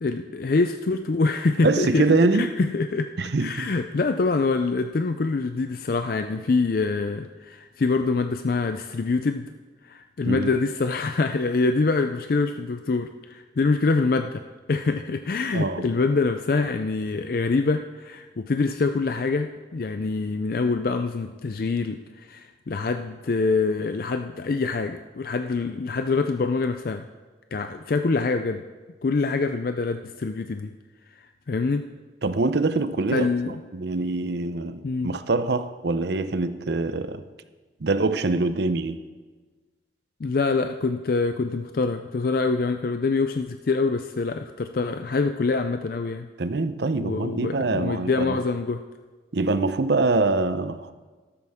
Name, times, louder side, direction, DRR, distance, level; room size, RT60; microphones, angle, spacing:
voice 1, 0.0-3.1 3.4-9.5 9.8-14.4 14.7-27.0 27.5-28.6 29.0-30.7 31.5-31.9 33.1-33.6 34.8-35.1 40.2-46.3 47.0-48.8, left 3 dB, 50° left, 0.4 m, -25 dB
voice 2, 1.6-2.6 3.2-3.7 10.3-10.5 15.5-15.9 32.2-37.2 37.8-39.0 46.4-48.4 49.3-50.9, right 3 dB, 65° right, 0.6 m, -24 dB
13.0 x 13.0 x 3.6 m
head